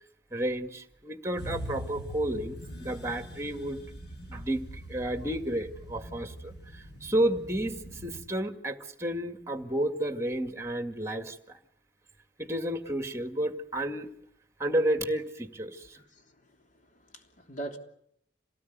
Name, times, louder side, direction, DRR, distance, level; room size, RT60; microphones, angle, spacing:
voice 1, 0.3-3.9 4.3-11.6 12.4-14.1 14.6-16.0, right 1 dB, 15° right, 2.0 m, -31 dB
sound 1, 1.4-8.3, equal, 60° left, 5.9 m, -43 dB
voice 2, 15.7-17.8, right 2 dB, 45° left, 3.4 m, -44 dB
27.5 x 18.5 x 9.4 m
head